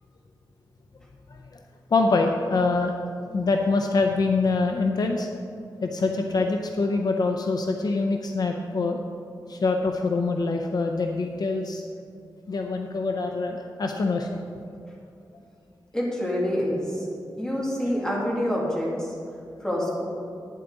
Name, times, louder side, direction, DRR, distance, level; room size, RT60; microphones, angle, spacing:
voice 1, 1.9-2.9 3.3-5.3 5.8-9.0 9.5-11.8 12.5-14.4, left 3 dB, 60° left, 3 dB, 0.6 m, -24 dB
voice 2, 15.9-17.1 17.4-19.1 19.6-20.1, equal, 10° left, -4 dB, 2.4 m, -26 dB
11.5 x 9.3 x 4.0 m, 2.4 s
wide cardioid pair, 130°, 8 cm